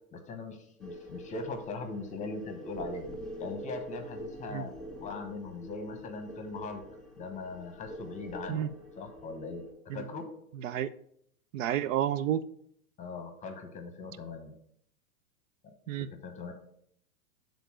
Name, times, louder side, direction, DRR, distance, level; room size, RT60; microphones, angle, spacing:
voice 1, 0.1-3.1 3.4-4.7 5.0-6.8 7.2-9.6 9.9-10.3 13.0-14.5 16.1-16.5, left 3 dB, 15° left, 6 dB, 0.9 m, -40 dB
sound 1, 0.8-9.7, equal, ahead, 1.6 m, -45 dB
voice 2, 11.5-12.4 15.9-16.1, right 11 dB, 65° right, 14 dB, 0.5 m, -30 dB
6.8 x 3.9 x 6.1 m, 0.68 s
hypercardioid pair, 135°, 43 cm